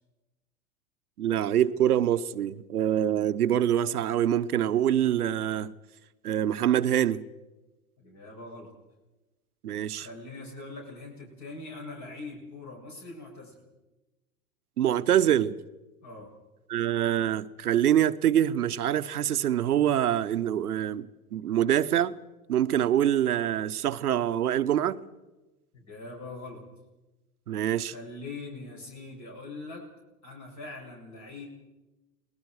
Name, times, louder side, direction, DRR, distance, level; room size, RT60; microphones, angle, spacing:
voice 1, 1.2-5.7 6.2-7.2 9.6-10.1 14.8-15.6 16.7-22.1 22.5-25.0 27.5-27.9, right 10 dB, 85° right, 13 dB, 1.0 m, -25 dB
voice 2, 8.0-8.7 9.9-13.6 16.0-16.3 25.7-26.6 27.9-29.8 30.2-31.5, left 3 dB, 40° left, -1 dB, 7.5 m, -42 dB
29.5 x 20.0 x 4.8 m, 1.1 s
hypercardioid pair, 100°, 44 cm